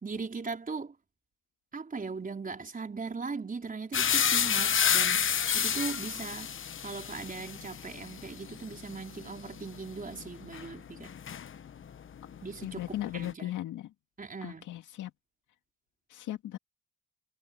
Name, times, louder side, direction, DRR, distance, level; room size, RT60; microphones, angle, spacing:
voice 1, 0.0-0.9 1.7-5.3 5.5-6.6 6.8-11.1 12.4-13.5 14.2-14.7, right 4 dB, 30° right, 4.8 m, -39 dB
sound 1, 3.9-11.9 12.2-13.3, left 8 dB, 40° left, 1.1 m, -30 dB
voice 2, 12.6-13.9 14.4-15.1 16.1-16.6, left 13 dB, 80° left, 2.3 m, -37 dB
cardioid pair, 90°, 30 cm